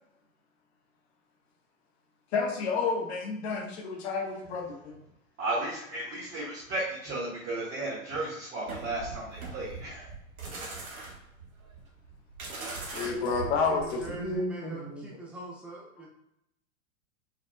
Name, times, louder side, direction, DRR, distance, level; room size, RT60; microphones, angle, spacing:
voice 1, 2.3-5.0 12.9-15.1, left 4 dB, 45° left, 1 dB, 1.4 m, -30 dB
voice 2, 5.4-10.1, right 2 dB, 30° right, -8 dB, 1.6 m, -34 dB
sound 1, 8.7-14.4, right 3 dB, 75° right, 1.4 m, -41 dB
voice 3, 13.0-16.1, right 3 dB, 5° right, -3 dB, 0.3 m, -43 dB
5.7 x 4.0 x 2.2 m, 0.80 s
figure-of-eight pair, 100°, 42 cm